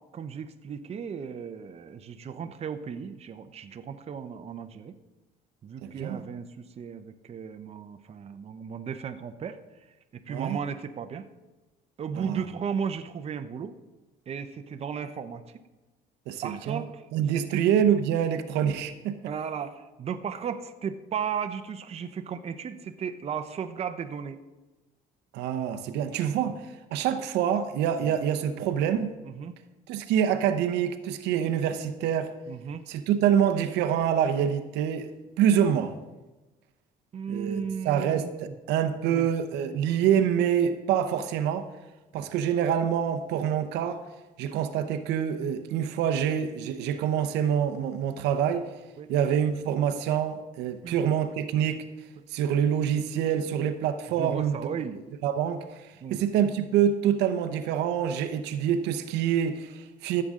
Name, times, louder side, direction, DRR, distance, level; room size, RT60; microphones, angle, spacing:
voice 1, 0.1-4.9 5.6-9.6 10.1-11.3 12.0-13.7 14.3-15.4 16.4-17.0 17.3-17.6 19.3-24.4 26.4-26.5 28.0-28.1 29.2-29.5 32.5-32.8 37.1-38.5 39.1-39.3 42.2-42.3 49.0-49.1 50.8-50.9 54.2-55.0 56.0-56.2, right 7 dB, 40° right, 8 dB, 0.7 m, -35 dB
voice 2, 5.8-6.2 10.3-10.6 12.1-12.4 16.3-16.8 17.1-19.2 25.3-26.6 26.9-29.1 29.9-32.3 32.9-35.9 37.3-41.7 42.1-44.0 44.4-48.7 49.1-51.8 52.3-54.6 55.2-55.7 56.1-60.2, right 9 dB, 85° right, 8 dB, 0.8 m, -26 dB
14.5 x 7.7 x 3.7 m, 1.1 s
cardioid pair, 110°, 17 cm